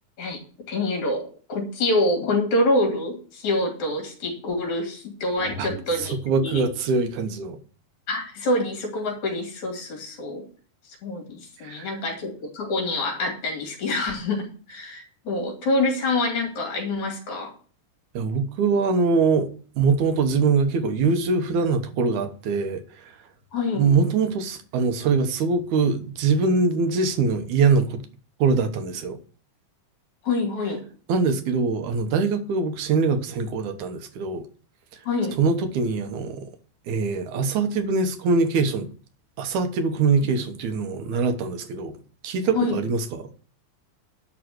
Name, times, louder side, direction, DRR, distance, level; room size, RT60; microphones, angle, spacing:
voice 1, 0.7-6.1 6.4-6.6 8.1-10.5 10.9-17.5 23.5-23.9 30.2-30.8 35.1-35.4 42.5-42.8, left 2 dB, 70° left, 3.8 m, -26 dB
sound 1, 5.4-7.5, equal, 50° left, 3.3 m, -41 dB
voice 2, 6.0-7.6 11.6-11.9 18.1-23.2 23.7-28.0 28.4-29.2 31.1-34.5 35.4-36.5 36.9-38.9 39.4-42.0 42.2-43.3, right 4 dB, 75° right, 2.5 m, -23 dB
11.5 x 3.8 x 7.7 m
omnidirectional pair, 3.5 m